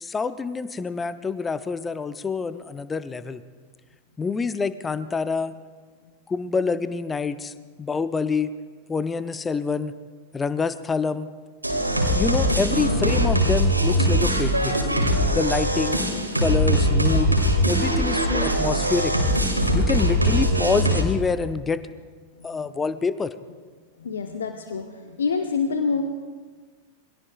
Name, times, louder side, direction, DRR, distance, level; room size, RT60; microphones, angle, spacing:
voice 1, 0.0-3.4 4.2-5.5 6.3-7.5 7.8-8.5 8.9-9.9 10.3-11.3 12.2-14.8 15.3-16.0 16.4-17.4 17.6-19.2 19.7-21.8 22.4-23.3, left 4 dB, 15° left, 14 dB, 0.6 m, -26 dB
sound 1, 11.6-21.0, equal, 85° right, 2.0 m, -21 dB
voice 2, 24.0-26.0, left 5 dB, 65° left, 5 dB, 1.0 m, -27 dB
27.5 x 22.0 x 2.4 m, 1.5 s
figure-of-eight pair, 90°, 0 cm